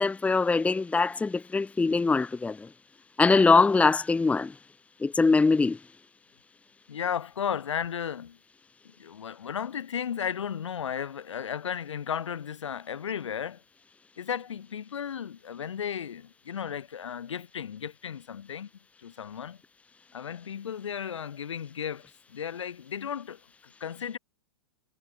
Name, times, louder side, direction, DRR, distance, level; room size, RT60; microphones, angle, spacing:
voice 1, 0.0-2.7 3.2-4.6 5.0-5.8, left 4 dB, 10° left, 1.5 m, -22 dB
voice 2, 6.9-8.4 8.8-13.6 14.2-18.7 19.0-19.6 20.1-24.2, left 8 dB, 65° left, 6.0 m, -34 dB
figure-of-eight pair, 100°, 16 cm